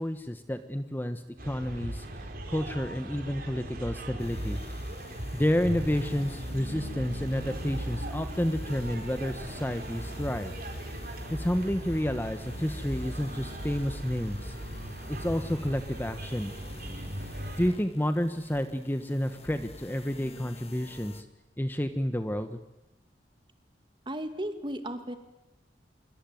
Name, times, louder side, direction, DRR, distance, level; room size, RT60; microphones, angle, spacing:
voice 1, 0.0-4.6 5.3-10.5 11.3-14.5 15.1-16.5 17.6-21.2 21.6-22.6, equal, 10° left, 9 dB, 1.2 m, -30 dB
sound 1, 1.4-17.7, right 1 dB, 55° right, 4.7 m, -38 dB
sound 2, 4.2-21.2, left 2 dB, 35° left, 1.7 m, -48 dB
voice 2, 24.1-25.1, right 1 dB, 25° right, 8 dB, 2.6 m, -35 dB
25.5 x 24.0 x 9.3 m, 0.93 s
head